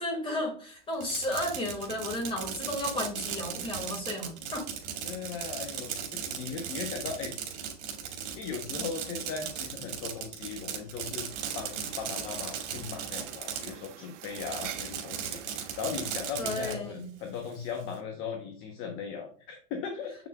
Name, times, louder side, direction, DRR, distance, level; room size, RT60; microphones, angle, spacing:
voice 1, 0.0-4.7 16.4-17.1, left 1 dB, 15° left, 1 dB, 2.1 m, -33 dB
Fireworks, 0.9-13.9 14.2-16.7, right 8 dB, 70° right, 2.1 m, -37 dB
voice 2, 5.0-7.6 8.2-11.3 11.5-20.1, left 6 dB, 35° left, 3 dB, 0.9 m, -38 dB
sound 1, 11.3-16.3, right 11 dB, 85° right, 0.8 m, -47 dB
7.3 x 5.8 x 2.3 m, 0.43 s
supercardioid pair, 155°, 35 cm